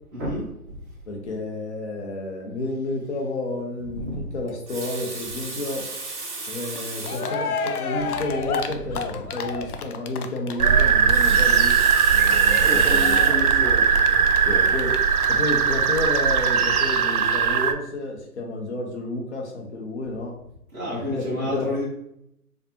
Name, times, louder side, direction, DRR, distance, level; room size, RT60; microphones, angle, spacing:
voice 1, 0.1-0.8 3.9-4.3 12.6-13.9 20.7-21.9, left 1 dB, 10° right, -8 dB, 0.6 m, -29 dB
voice 2, 1.1-5.9 6.5-11.8 12.1-13.2 14.4-15.0 15.3-20.3 20.8-21.7, left 2 dB, 45° left, 1 dB, 1.0 m, -31 dB
Water tap faucet, 4.5-7.4 8.2-8.3 8.6-8.7 10.9-13.5 14.1-14.3, right 3 dB, 45° right, 1.2 m, -35 dB
Cheering, 6.8-6.9 7.0-16.2 16.4-16.5 16.7-16.8, left 5 dB, 70° left, 0.6 m, -31 dB
sound 1, 10.6-17.7, right 6 dB, 65° right, 0.5 m, -19 dB
4.4 x 2.5 x 2.8 m, 0.77 s
figure-of-eight pair, 145°, 47 cm